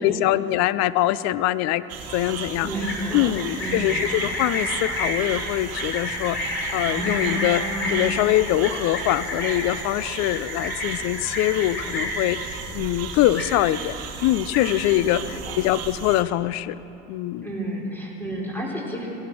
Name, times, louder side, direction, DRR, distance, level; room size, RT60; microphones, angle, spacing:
voice 1, 0.0-1.8 2.1-2.7 3.1-16.8 17.1-17.5, left 15 dB, 60° left, 17 dB, 0.6 m, -23 dB
sound 1, 1.9-16.2, right 6 dB, 55° right, 1.4 m, -35 dB
voice 2, 2.6-4.1 14.9-15.6 17.4-19.1, right 1 dB, 5° left, -2 dB, 3.9 m, -32 dB
Livestock farm animals working animals, 2.7-12.3 12.6-13.0 13.2-13.9 14.2-14.9, left 1 dB, 40° left, 4.1 m, -29 dB
17.5 x 11.0 x 6.1 m, 2.9 s
supercardioid pair, 95°, 31 cm